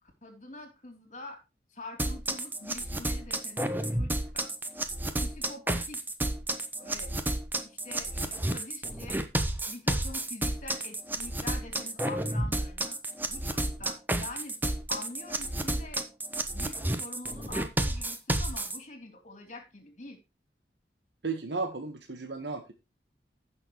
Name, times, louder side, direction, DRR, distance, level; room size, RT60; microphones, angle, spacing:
voice 1, 0.0-1.4 1.7-4.5 5.2-6.0 6.8-7.1 7.6-9.2 9.7-13.0 13.3-14.6 14.9-16.0 16.5-20.2, left 2 dB, 45° left, 5 dB, 3.2 m, -45 dB
sound 1, 2.0-18.8, right 1 dB, 10° right, 0.9 m, -31 dB
voice 2, 21.2-22.7, right 4 dB, 85° right, 6 dB, 1.4 m, -34 dB
15.5 x 6.4 x 3.1 m, 0.24 s
head